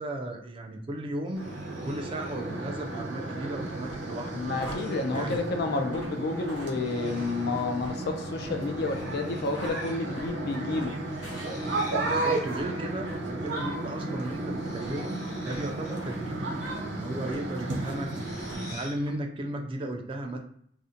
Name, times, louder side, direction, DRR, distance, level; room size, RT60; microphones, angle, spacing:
voice 1, 0.0-1.4 1.8-4.4 5.1-5.4 12.1-15.2 15.4-20.4, right 1 dB, 30° right, 3 dB, 0.3 m, -35 dB
sound 1, 1.2-2.5 3.7-4.0 4.5-5.5 6.7-7.6 8.8-9.9 10.2-10.3 11.1-12.2 14.1-16.1 17.6-19.1, left 1 dB, 15° left, 0.7 m, -50 dB
sound 2, 1.3-18.8, right 2 dB, 70° right, 0.6 m, -34 dB
sound 3, 3.8-12.0 12.4-12.7 13.0-13.2 13.6-13.8 14.2-14.4 14.8-14.9 15.5-15.6 15.9-16.2 16.6-16.8 17.2-18.0 18.4-18.7 19.0-19.2, equal, 85° left, 1.1 m, -47 dB
voice 2, 4.3-10.9, left 3 dB, 60° left, 5 dB, 0.4 m, -30 dB
2.5 x 2.1 x 2.7 m, 0.63 s
head